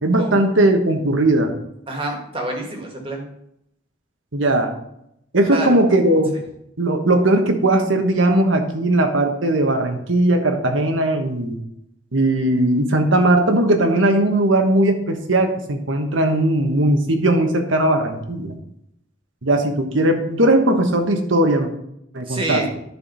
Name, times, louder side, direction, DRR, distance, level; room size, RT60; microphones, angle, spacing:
voice 1, 0.0-1.5 4.3-4.7 5.3-6.3 6.8-11.6 12.1-18.5 19.4-21.7 22.1-22.6, right 1 dB, 80° right, 6 dB, 1.3 m, -18 dB
voice 2, 1.9-3.3 5.5-5.8 22.3-22.7, right 1 dB, 25° right, 2 dB, 1.7 m, -27 dB
11.0 x 4.5 x 5.4 m, 0.78 s
head